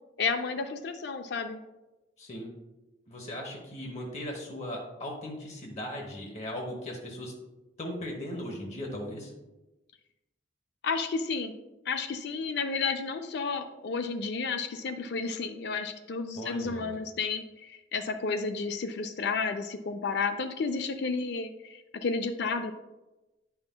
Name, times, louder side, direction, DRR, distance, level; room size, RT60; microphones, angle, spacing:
voice 1, 0.2-1.6 10.8-11.6 11.9-22.7, left 4 dB, 55° left, 8 dB, 0.4 m, -32 dB
voice 2, 2.2-2.5 3.1-7.3 7.8-9.3 16.3-17.0, left 1 dB, 35° left, 0 dB, 1.0 m, -38 dB
9.6 x 5.7 x 2.2 m, 1.0 s
head